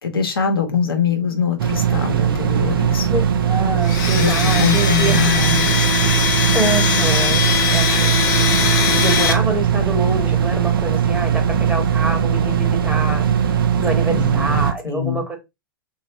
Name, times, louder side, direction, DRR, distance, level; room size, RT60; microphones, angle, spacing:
voice 1, 0.0-3.1 4.1-5.7 14.0-15.2, left 7 dB, 90° left, 0.9 m, -23 dB
sound 1, 1.6-14.7, right 8 dB, 75° right, 0.4 m, -19 dB
voice 2, 3.1-5.4 6.5-7.5 7.7-13.3 13.8-15.4, right 2 dB, 10° right, 0.9 m, -26 dB
Domestic sounds home sounds, 3.8-9.3, left 6 dB, 55° left, 0.9 m, -20 dB
3.1 x 2.5 x 2.9 m
hypercardioid pair, 110°, 12 cm